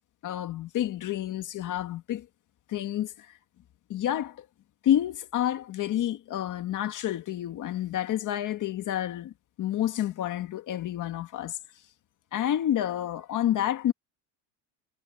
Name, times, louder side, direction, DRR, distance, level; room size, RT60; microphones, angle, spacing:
voice 1, 0.2-2.3 2.7-3.4 3.9-4.5 4.8-11.6 12.3-13.9, left 11 dB, 40° left, 1.9 m, -29 dB
cardioid pair, 160°, 48 cm